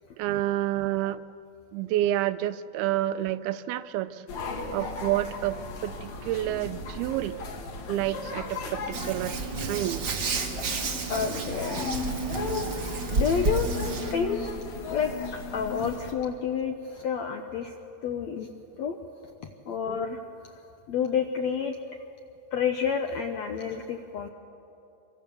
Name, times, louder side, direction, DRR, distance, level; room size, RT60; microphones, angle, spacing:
voice 1, 0.2-1.3 1.7-4.3 4.7-7.4 7.9-10.2 13.5-13.6, right 14 dB, 90° right, 13 dB, 2.6 m, -29 dB
sound 1, 4.3-16.1, left 2 dB, 55° left, 3.0 m, -36 dB
Hands, 8.9-14.1, right 4 dB, 60° right, 1.0 m, -31 dB
voice 2, 11.1-11.9 13.1-13.7 14.1-14.5 14.9-15.1 15.5-17.7 18.0-18.5 18.8-19.0 19.7-20.2 20.9-22.0 22.5-24.3, left 7 dB, 75° left, 5 dB, 1.6 m, -29 dB
25.0 x 24.0 x 7.1 m, 2.8 s
omnidirectional pair, 4.3 m